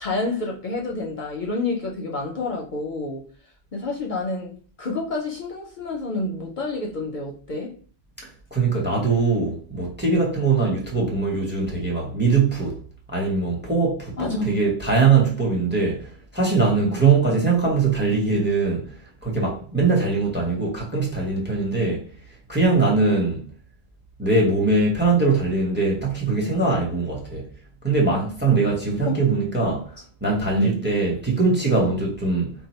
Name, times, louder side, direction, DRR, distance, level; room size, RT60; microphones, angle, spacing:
voice 1, 0.0-3.2 3.7-7.7 14.2-14.5 16.8-17.1 29.0-29.2 29.5-29.6 30.5-30.8, left 2 dB, 55° left, 0.7 m, -28 dB
voice 2, 8.2-12.8 13.1-14.2 14.4-18.9 19.2-22.0 22.5-23.4 24.2-27.5 27.8-32.5, right 4 dB, 10° right, 0.7 m, -21 dB
2.7 x 2.1 x 4.1 m
omnidirectional pair, 1.1 m